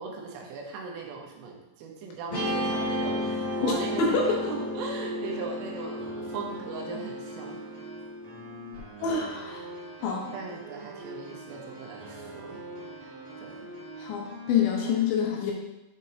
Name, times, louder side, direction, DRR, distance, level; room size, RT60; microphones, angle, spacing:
voice 1, 0.0-4.2 4.5-7.6 9.1-9.2 10.3-12.6 13.4-13.7 14.2-14.3, right 4 dB, 85° right, 0 dB, 3.5 m, -39 dB
Guitar, 2.3-8.8, left 1 dB, 45° left, 1.9 m, -33 dB
sound 1, 3.0-15.0, right 2 dB, 65° right, 2.4 m, -43 dB
voice 2, 3.6-4.5 9.0-9.6 10.0-10.3 14.0-15.5, left 5 dB, 75° left, 0 dB, 3.1 m, -27 dB
8.5 x 5.3 x 2.8 m, 0.98 s
omnidirectional pair, 5.5 m